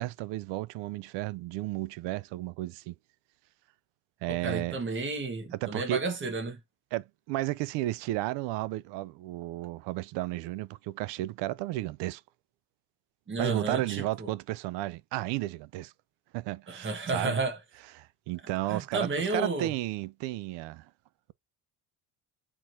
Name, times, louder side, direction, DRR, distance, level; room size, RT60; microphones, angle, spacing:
voice 1, 0.0-2.9 4.2-4.8 5.5-6.0 6.9-12.2 13.4-15.9 16.3-17.4 18.0-20.9, right 17 dB, 90° right, 0.5 m, -33 dB
voice 2, 4.3-6.6 13.3-14.3 16.7-17.6 18.7-19.7, right 3 dB, 30° right, 1.5 m, -32 dB
4.6 x 3.8 x 2.8 m
cardioid pair, 135°, 41 cm